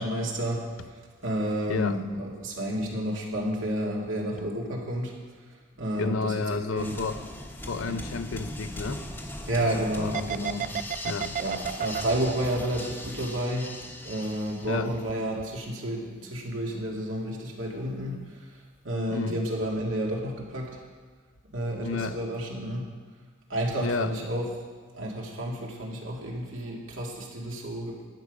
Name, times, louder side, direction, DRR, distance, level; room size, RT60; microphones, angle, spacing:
voice 1, 0.0-5.2 5.8-7.0 7.9-8.0 9.5-10.6 11.0-11.1 11.4-13.7 14.0-18.6 18.8-20.8 21.4-22.9 23.5-24.5 24.9-28.0, right 1 dB, 80° right, -1 dB, 2.3 m, -31 dB
voice 2, 1.7-2.0 6.0-7.2 7.6-9.0 10.0-10.3 11.0-11.4 14.7-14.9 19.1-19.4 21.8-22.2 23.8-24.2, left 4 dB, 90° left, 11 dB, 0.6 m, -31 dB
sound 1, 6.8-15.2, left 1 dB, 10° left, 1.0 m, -40 dB
sound 2, 10.1-13.9 14.2-15.1 15.4-15.6, right 8 dB, 40° right, 0.4 m, -32 dB
12.0 x 9.7 x 5.3 m, 1.5 s
head